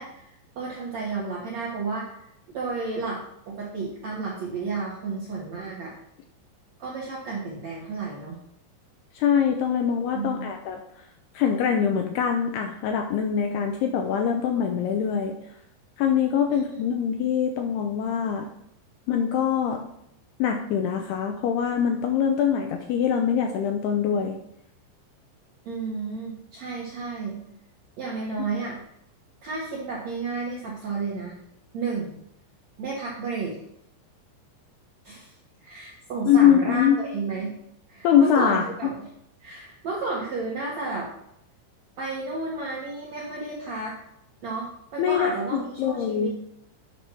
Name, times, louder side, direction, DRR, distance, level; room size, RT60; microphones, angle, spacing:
voice 1, 0.0-3.2 3.5-5.9 6.8-8.4 10.1-10.5 16.5-16.8 25.6-27.4 28.0-28.8 29.4-31.3 31.7-32.2 32.8-33.6 35.0-35.3 35.6-37.6 37.9-39.1 39.4-41.1 42.0-43.9 44.4-46.3, right 3 dB, 70° right, -4 dB, 1.6 m, -32 dB
voice 2, 9.1-10.8 11.3-15.4 16.0-18.5 19.1-19.8 20.4-24.4 36.3-37.0 38.0-38.7 45.0-46.3, left 8 dB, 80° left, 4 dB, 2.3 m, -23 dB
9.2 x 5.9 x 4.5 m, 0.75 s
omnidirectional pair, 5.2 m